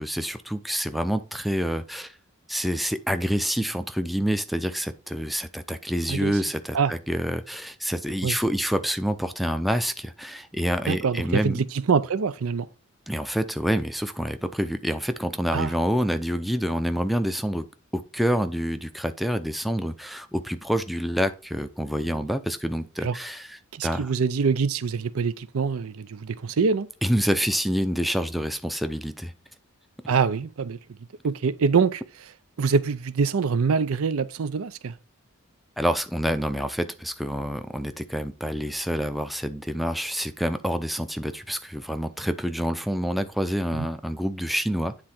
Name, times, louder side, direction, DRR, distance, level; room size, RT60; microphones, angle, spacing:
voice 1, 0.0-2.1 2.5-11.6 13.1-17.7 17.9-24.1 27.0-29.3 35.8-45.0, equal, ahead, 0.5 m, -27 dB
voice 2, 10.9-12.7 15.5-15.7 23.0-23.1 23.7-26.9 30.1-30.8 31.2-32.0 32.6-34.9 43.7-43.9, right 5 dB, 70° right, 0.5 m, -24 dB
9.7 x 3.7 x 4.3 m
head